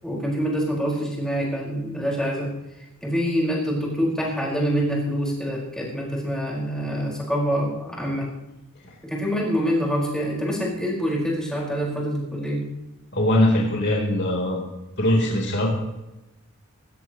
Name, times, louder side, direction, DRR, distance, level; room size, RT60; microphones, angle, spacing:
voice 1, 0.0-2.5 2.8-8.3 9.0-12.7, equal, 5° left, -4 dB, 5.1 m, -26 dB
voice 2, 13.1-14.6 15.0-15.7, left 1 dB, 55° left, -2 dB, 3.9 m, -21 dB
18.5 x 17.0 x 3.1 m, 0.96 s
head